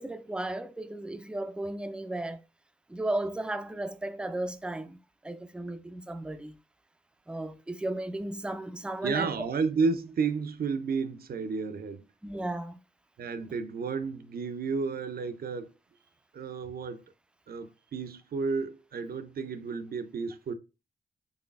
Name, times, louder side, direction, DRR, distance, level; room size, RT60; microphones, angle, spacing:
voice 1, 0.0-2.4 2.9-5.0 5.2-6.6 7.3-9.4 12.2-12.8, right 1 dB, 5° right, 0.4 m, -35 dB
voice 2, 9.0-12.0 13.2-15.7 16.3-17.0 17.5-20.5, right 5 dB, 60° right, 0.5 m, -32 dB
4.0 x 3.2 x 2.3 m
supercardioid pair, 40°, 18 cm